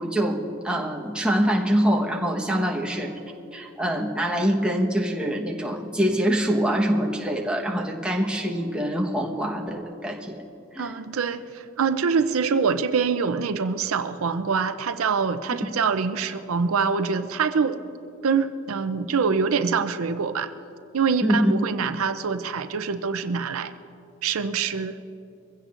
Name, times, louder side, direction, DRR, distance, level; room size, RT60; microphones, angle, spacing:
voice 1, 0.0-3.1 3.5-10.4 10.7-10.9 21.2-21.5, equal, 5° right, -1 dB, 1.2 m, -24 dB
voice 2, 10.8-17.8 18.2-20.5 20.9-23.7 24.2-25.0, right 5 dB, 85° right, 10 dB, 0.5 m, -25 dB
23.0 x 16.0 x 2.5 m, 2.7 s
head